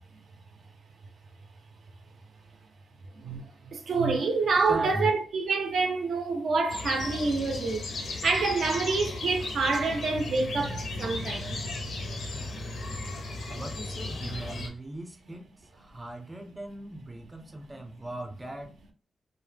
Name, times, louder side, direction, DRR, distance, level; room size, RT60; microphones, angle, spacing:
voice 1, 3.2-11.6, right 4 dB, 75° right, 0.4 m, -27 dB
voice 2, 4.7-5.1 13.5-18.7, right 1 dB, 20° right, 0.5 m, -38 dB
sound 1, 6.7-14.7, left 2 dB, 80° left, 0.5 m, -35 dB
2.1 x 2.0 x 3.2 m
cardioid pair, 90°, 0 cm